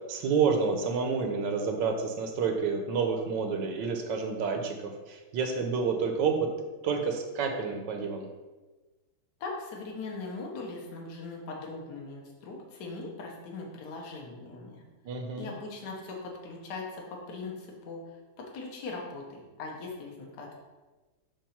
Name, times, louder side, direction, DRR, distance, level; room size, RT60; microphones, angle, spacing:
voice 1, 0.1-6.5 6.8-8.3 15.0-15.5, right 5 dB, 70° right, 4 dB, 1.3 m, -29 dB
voice 2, 9.4-14.8 15.4-20.6, left 3 dB, 60° left, -1 dB, 1.5 m, -40 dB
7.2 x 2.6 x 5.7 m, 1.2 s
omnidirectional pair, 2.2 m